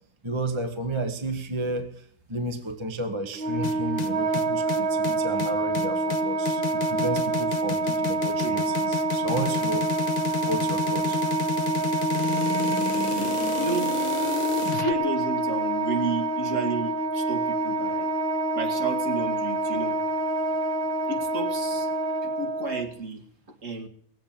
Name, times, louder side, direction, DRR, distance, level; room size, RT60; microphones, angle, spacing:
voice 1, 0.2-1.9 2.3-9.9 10.4-11.2, right 2 dB, 20° right, 7 dB, 0.9 m, -32 dB
Wind instrument woodwind instrument, 3.3-22.8, right 2 dB, 75° right, 2.6 m, -27 dB
sound 1, 3.6-14.9, left 10 dB, 75° left, 1.8 m, -31 dB
voice 2, 13.0-14.0 14.7-18.1 18.5-20.0 21.1-21.9 22.2-23.9, right 3 dB, 40° right, 2 dB, 2.4 m, -32 dB
19.5 x 8.1 x 8.8 m, 0.62 s
omnidirectional pair, 2.2 m